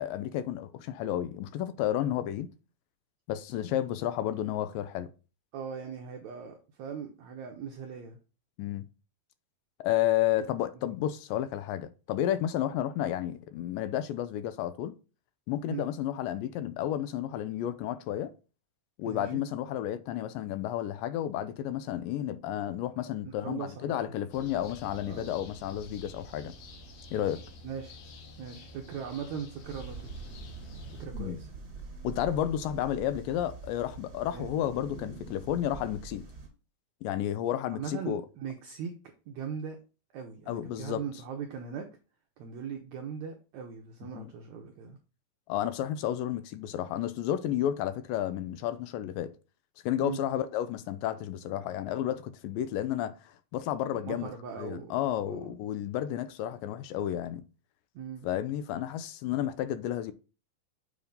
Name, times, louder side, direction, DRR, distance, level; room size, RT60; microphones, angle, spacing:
voice 1, 0.0-2.5 3.3-5.1 8.6-8.8 9.8-15.0 15.5-18.3 19.0-26.6 27.1-27.4 31.1-31.4 32.0-36.3 37.0-38.2 40.5-41.1 44.2-44.3 45.5-49.4 49.8-54.3 54.6-57.4 58.2-60.1, left 11 dB, 80° left, 2.2 m, -32 dB
voice 2, 5.5-8.2 15.7-15.8 19.0-19.4 23.2-24.2 25.1-25.4 27.6-28.0 28.4-30.1 30.9-31.5 34.3-34.5 37.7-38.9 39.3-39.8 40.1-41.9 42.4-45.0 50.0-50.2 54.0-55.0 55.3-55.6 57.9-58.3, right 7 dB, 75° right, 1.7 m, -39 dB
sound 1, 24.3-31.1, equal, 65° left, 2.0 m, -48 dB
sound 2, 29.6-36.5, right 3 dB, 35° right, 2.7 m, -44 dB
7.0 x 3.6 x 5.2 m
omnidirectional pair, 4.1 m